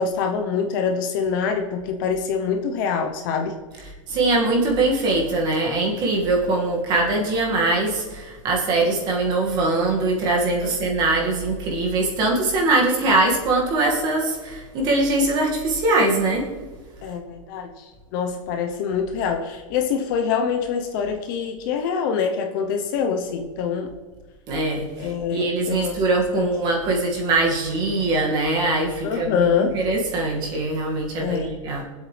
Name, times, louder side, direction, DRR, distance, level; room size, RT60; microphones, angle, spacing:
voice 1, 0.0-3.6 10.6-10.9 17.0-23.9 25.0-26.0 26.4-26.5 29.0-29.8 31.2-31.5, left 6 dB, 40° left, 5 dB, 0.9 m, -25 dB
voice 2, 4.1-16.4 24.5-29.5 29.7-31.8, right 2 dB, 25° right, -1 dB, 2.1 m, -22 dB
23.5 x 8.1 x 3.4 m, 1.4 s
supercardioid pair, 175°, 17 cm